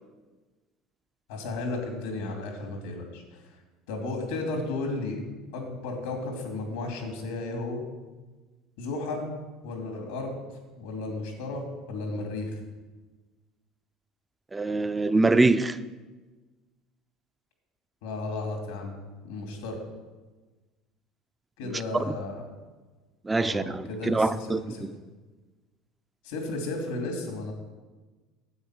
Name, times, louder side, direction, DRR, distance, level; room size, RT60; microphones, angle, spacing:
voice 1, 1.3-3.2 3.9-5.2 5.5-7.8 8.8-9.3 9.6-10.3 10.8-12.5 18.0-18.9 19.2-19.8 21.6-22.4 23.4-24.3 24.7-24.8 26.2-27.5, left 2 dB, 90° left, 2.7 m, -33 dB
voice 2, 14.5-15.8 21.6-21.7 22.1-22.2 23.2-24.9, right 2 dB, 15° right, 0.5 m, -24 dB
9.6 x 8.3 x 6.0 m
supercardioid pair, 120°, 0 cm